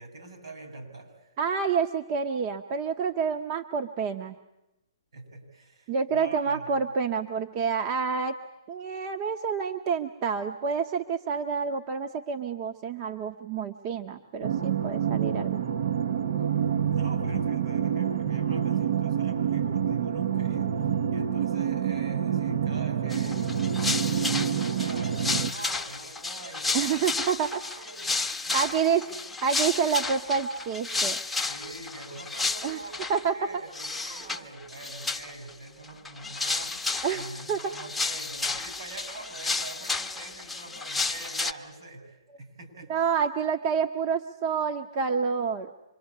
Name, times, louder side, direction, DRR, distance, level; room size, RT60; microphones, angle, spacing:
voice 1, 0.0-1.3 5.1-6.8 16.4-27.2 27.9-29.2 31.5-43.1, right 2 dB, 75° right, 4 dB, 7.6 m, -44 dB
voice 2, 1.4-4.4 5.9-8.4 8.7-15.6 26.7-27.6 28.5-29.0 29.4-31.2 32.6-32.8 33.1-33.4 34.1-34.3 37.0-37.2 37.5-37.7 42.9-45.7, right 6 dB, 35° right, 6 dB, 1.0 m, -28 dB
sound 1, 14.4-25.5, right 8 dB, 60° right, 1.0 m, -27 dB
sound 2, 23.1-33.2 33.7-34.4 34.7-35.5 35.8-41.5, left 3 dB, 5° left, 0.9 m, -32 dB
26.0 x 23.0 x 8.6 m, 0.95 s
hypercardioid pair, 145°, 3 cm